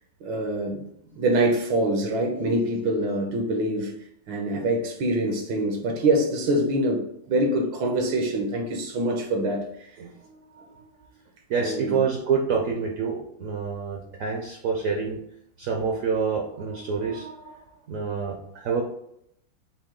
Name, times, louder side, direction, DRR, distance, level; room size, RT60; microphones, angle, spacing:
voice 1, 0.2-0.8 1.1-3.9 4.3-9.6 11.6-12.0, right 1 dB, 80° right, 1 dB, 1.5 m, -25 dB
voice 2, 10.0-10.8 11.5-15.2 15.6-17.6 17.9-18.8, right 5 dB, 65° right, 1 dB, 0.8 m, -28 dB
6.1 x 2.3 x 3.7 m, 0.74 s
omnidirectional pair, 2.0 m